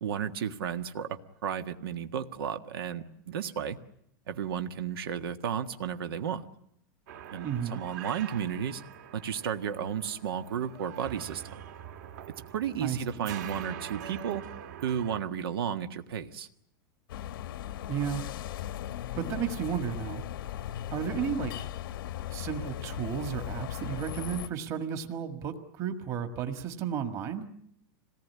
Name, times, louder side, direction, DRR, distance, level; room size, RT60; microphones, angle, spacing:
voice 1, 0.0-3.8 4.3-6.4 7.3-8.8 9.1-11.6 12.5-14.4 14.8-16.5, right 8 dB, 90° right, 8 dB, 1.7 m, -33 dB
sound 1, 7.1-15.2, right 9 dB, 50° right, 1.9 m, -44 dB
voice 2, 7.4-7.8 12.8-13.3 17.9-18.2 19.2-20.2 20.9-21.7 22.3-27.5, right 8 dB, 25° right, 7 dB, 1.7 m, -33 dB
sound 2, 17.1-24.5, left 12 dB, 75° left, 1.0 m, -38 dB
26.0 x 18.5 x 9.6 m, 0.73 s
supercardioid pair, 180°, 12 cm